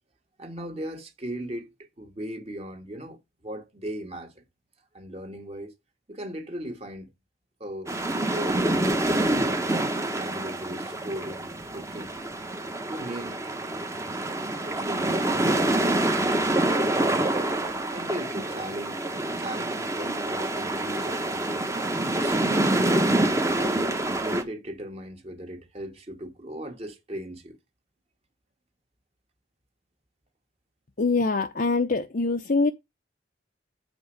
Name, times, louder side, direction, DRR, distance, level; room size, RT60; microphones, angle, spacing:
voice 1, 0.4-4.4 4.9-5.7 6.1-7.1 7.6-9.7 10.2-12.2 12.9-13.4 14.6-17.3 17.9-21.7 22.2-23.1 23.5-27.6, right 1 dB, 35° right, 1.7 m, -37 dB
sound 1, 7.9-24.4, right 1 dB, 15° right, 1.1 m, -26 dB
voice 2, 31.0-32.7, left 3 dB, 50° left, 0.7 m, -24 dB
8.1 x 4.4 x 6.3 m
head